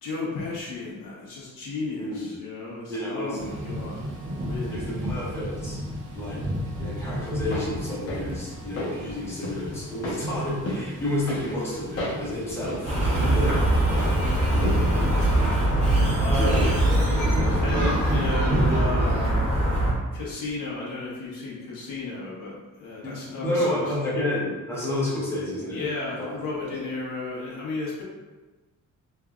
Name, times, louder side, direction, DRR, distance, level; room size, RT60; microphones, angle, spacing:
voice 1, 0.0-4.0 4.4-4.8 14.7-15.2 16.2-16.7 17.1-19.5 20.1-22.5 22.8-23.6 25.7-28.0, left 3 dB, 80° left, -5 dB, 1.1 m, -33 dB
voice 2, 2.0-2.3 2.9-3.6 4.7-5.8 6.1-6.4 6.8-13.8 14.5-14.8 16.3-16.7 17.5-17.8 23.0-25.8 26.2-26.4 26.6-26.7, left 1 dB, 10° left, -8 dB, 1.0 m, -30 dB
Thunder / Rain, 3.4-18.3, equal, 40° right, 0.6 m, -36 dB
sound 1, 7.2-18.2 18.5-18.6, left 1 dB, 45° left, 0.9 m, -36 dB
sound 2, 12.8-19.9, right 1 dB, 20° right, 1.1 m, -22 dB
3.6 x 3.3 x 2.4 m, 1.2 s
wide cardioid pair, 165°, 32 cm